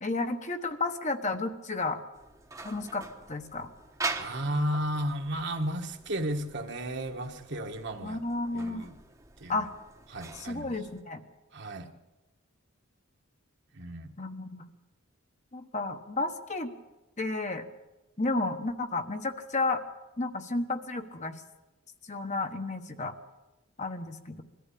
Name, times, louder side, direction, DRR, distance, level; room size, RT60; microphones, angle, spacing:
voice 1, 0.0-2.0 2.6-3.7 8.0-8.9 9.5-9.7 10.3-11.2 14.2-14.7 15.5-16.7 17.2-17.7 18.2-19.8 20.2-21.4 22.0-23.1 23.8-24.4, left 3 dB, 35° left, 6 dB, 1.2 m, -32 dB
sound 1, 2.1-11.0, right 3 dB, 15° right, 1.1 m, -43 dB
voice 2, 4.2-8.2 8.5-9.0 9.4-9.7 10.1-10.7 11.5-11.9 13.7-14.2, right 1 dB, 55° right, 4 dB, 1.6 m, -33 dB
22.0 x 14.0 x 8.6 m, 1.1 s
head